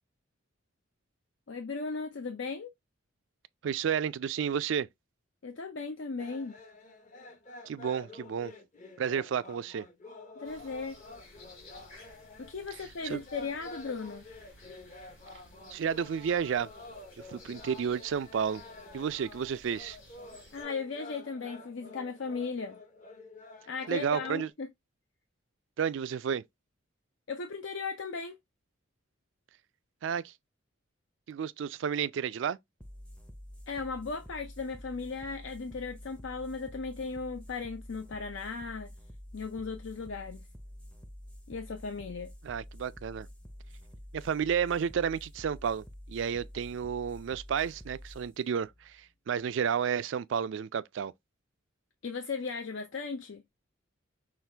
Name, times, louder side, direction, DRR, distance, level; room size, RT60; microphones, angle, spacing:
voice 1, 1.5-2.7 5.4-6.6 10.4-11.0 12.4-14.2 20.5-22.8 23.7-24.7 27.3-28.4 33.7-38.9 39.3-40.4 41.5-42.3 52.0-53.4, left 4 dB, 70° left, 0.6 m, -37 dB
voice 2, 3.6-4.9 7.7-8.5 9.0-9.9 12.7-13.2 15.7-16.7 17.3-18.6 18.9-20.0 23.9-24.5 25.8-26.4 30.0-30.3 31.3-32.6 42.4-43.3 44.1-51.1, right 7 dB, 70° right, 0.3 m, -31 dB
sound 1, 6.2-24.5, left 2 dB, 40° left, 0.9 m, -50 dB
sound 2, 10.4-20.6, left 2 dB, 85° left, 2.4 m, -56 dB
sound 3, 32.8-49.8, equal, 5° left, 0.6 m, -49 dB
5.8 x 2.4 x 3.3 m
head